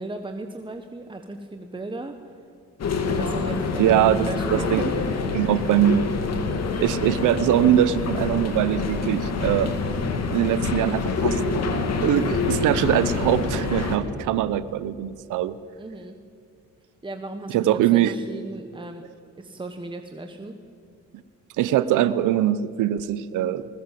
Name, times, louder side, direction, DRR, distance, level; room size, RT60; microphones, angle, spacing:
voice 1, 0.0-2.1 3.0-5.4 15.8-16.2 17.0-19.1 19.4-20.6 23.6-23.7, right 2 dB, 15° right, 6 dB, 1.4 m, -36 dB
sound 1, 2.8-14.0, left 4 dB, 60° left, 2.8 m, -26 dB
voice 2, 3.8-4.8 5.3-6.1 6.8-9.7 10.3-11.4 11.8-15.6 17.5-18.1 21.6-23.7, right 11 dB, 85° right, 15 dB, 0.9 m, -22 dB
20.5 x 20.0 x 7.7 m, 2.4 s
cardioid pair, 90°, 30 cm